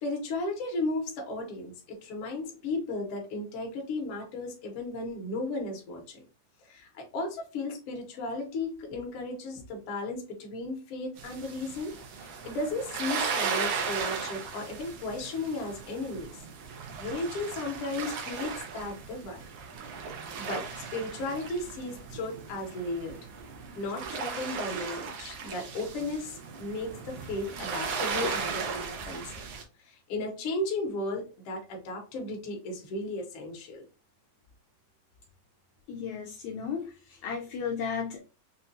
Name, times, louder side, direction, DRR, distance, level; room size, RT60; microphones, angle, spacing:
voice 1, 0.0-6.2 6.6-11.9 12.2-16.3 17.0-19.4 20.4-23.1 23.7-29.4 29.8-33.8, left 2 dB, 65° left, 0 dB, 1.5 m, -35 dB
sound 1, 11.2-29.6, right 5 dB, 85° right, 1.3 m, -36 dB
voice 2, 35.9-38.2, left 6 dB, 80° left, 0 dB, 1.8 m, -34 dB
5.3 x 2.2 x 2.6 m, 0.32 s
omnidirectional pair, 3.7 m